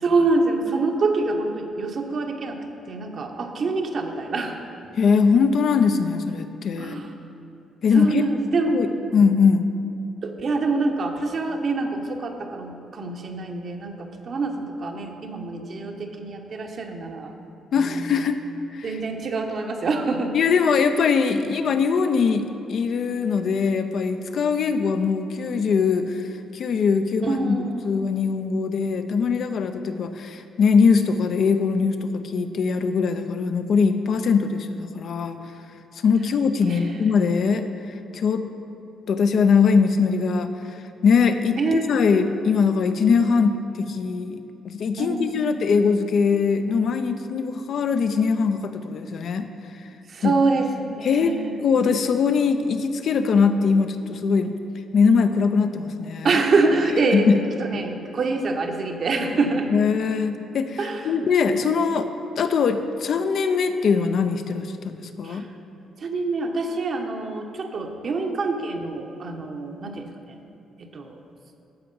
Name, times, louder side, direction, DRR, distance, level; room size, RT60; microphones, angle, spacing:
voice 1, 0.0-2.6 2.9-4.6 6.8-7.1 7.9-9.0 10.2-17.3 17.8-18.2 18.8-20.3 27.2-27.9 36.7-37.1 41.6-42.2 45.0-45.5 50.1-51.6 56.2-57.3 57.6-59.7 60.8-61.2 65.2-65.5 66.0-70.4 70.8-71.2, right 3 dB, 50° right, 3 dB, 1.0 m, -26 dB
voice 2, 4.9-7.0 7.8-8.3 8.7-8.9 9.1-9.7 17.7-18.4 18.7-18.9 20.3-26.3 26.5-27.6 27.8-35.4 36.0-37.6 38.1-38.4 39.1-40.5 41.0-49.5 50.2-50.3 51.0-54.6 54.9-56.3 57.1-57.4 59.7-60.8 61.0-62.1 62.4-65.5, left 5 dB, 65° left, 8 dB, 0.5 m, -21 dB
14.0 x 4.7 x 5.4 m, 2.7 s
cardioid pair, 90°, 0 cm